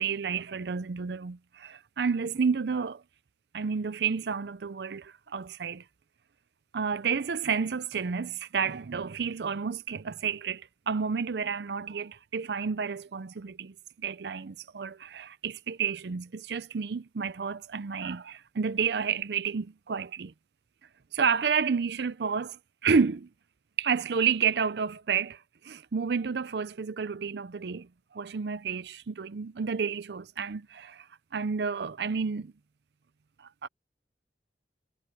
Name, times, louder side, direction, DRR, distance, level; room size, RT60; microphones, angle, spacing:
voice 1, 0.0-3.0 3.5-5.8 6.7-20.3 21.1-23.3 23.8-31.1 31.3-32.5 33.4-33.7, right 6 dB, 75° right, 0.5 m, -30 dB
head